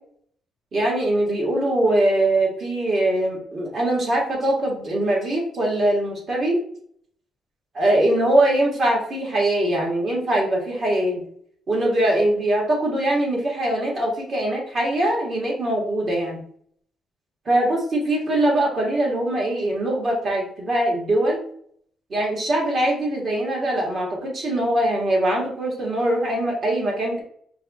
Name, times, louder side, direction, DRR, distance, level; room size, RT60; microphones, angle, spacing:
voice 1, 0.7-6.6 7.7-11.2 11.7-16.4 17.5-21.4 22.1-27.2, right 1 dB, 40° right, -2 dB, 1.5 m, -22 dB
4.5 x 2.4 x 4.0 m, 0.62 s
cardioid pair, 145°, 0 cm